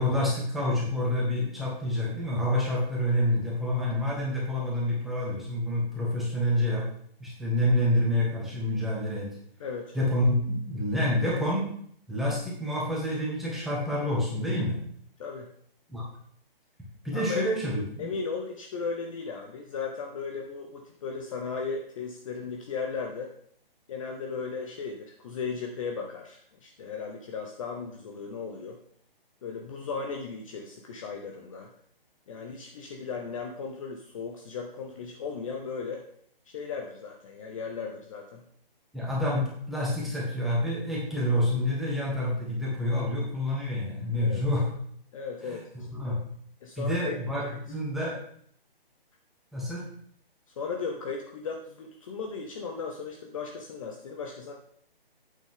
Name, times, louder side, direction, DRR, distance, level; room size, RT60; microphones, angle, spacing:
voice 1, 0.0-6.9 7.2-9.3 9.9-11.7 12.1-14.8 15.9-16.0 17.0-18.1 38.9-44.7 45.5-46.2 46.8-48.2 49.5-49.9, left 1 dB, ahead, -6 dB, 2.0 m, -28 dB
voice 2, 9.6-10.0 15.2-15.5 17.1-17.5 18.0-23.3 23.9-28.8 29.4-31.7 32.3-36.0 36.5-38.4 44.2-44.4 45.1-45.6 46.6-47.2 47.5-47.6 50.6-54.5, left 5 dB, 35° left, 2 dB, 0.9 m, -36 dB
8.5 x 7.1 x 3.8 m, 0.64 s
figure-of-eight pair, 145°, 29 cm